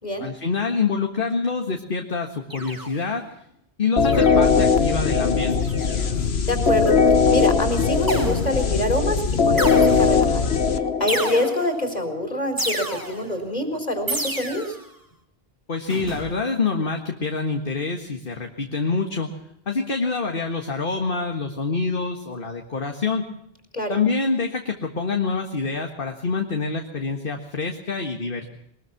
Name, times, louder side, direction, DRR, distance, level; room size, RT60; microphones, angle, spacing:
voice 1, 0.2-3.3 3.8-5.6 15.7-19.3 19.7-23.3 23.9-28.5, left 4 dB, 60° left, 3 dB, 2.0 m, -26 dB
sound 1, 2.5-3.2 4.0-4.6 5.6-6.1 8.1-8.8 9.6-10.3 11.1-11.9 12.6-13.4 14.1-14.9 15.9-16.3, right 1 dB, 20° right, 2.6 m, -30 dB
sound 2, 4.0-11.6, left 5 dB, 85° left, 1.5 m, -20 dB
voice 2, 6.2-7.0 7.3-10.5 11.0-14.8 23.7-24.0, left 1 dB, 40° left, 6 dB, 4.5 m, -25 dB
22.5 x 21.0 x 6.0 m, 0.76 s
omnidirectional pair, 1.0 m